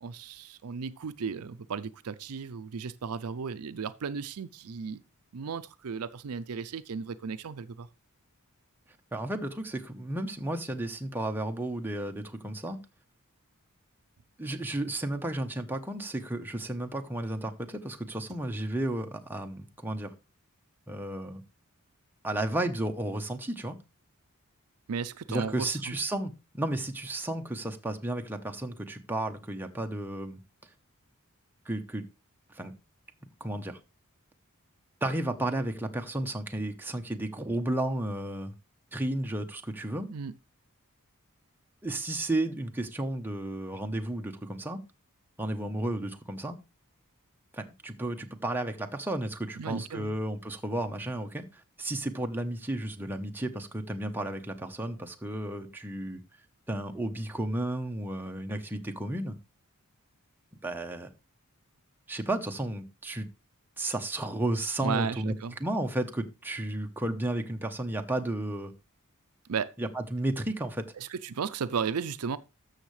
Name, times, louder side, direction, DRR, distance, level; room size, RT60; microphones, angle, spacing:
voice 1, 0.0-5.0 5.3-7.9 24.9-25.9 40.1-40.3 49.6-50.2 64.8-65.6 69.5-69.7 71.0-72.4, right 6 dB, 75° right, 0.5 m, -35 dB
voice 2, 9.1-12.8 14.4-20.1 20.9-21.4 22.2-23.8 25.3-30.4 31.7-32.0 32.5-32.7 33.4-33.8 35.0-38.5 38.9-40.1 41.8-44.8 45.4-46.6 47.5-56.2 56.7-59.4 60.6-61.1 62.1-63.3 63.8-65.3 65.6-68.7 69.8-70.8, right 1 dB, 10° right, 0.9 m, -33 dB
13.5 x 6.5 x 3.2 m
head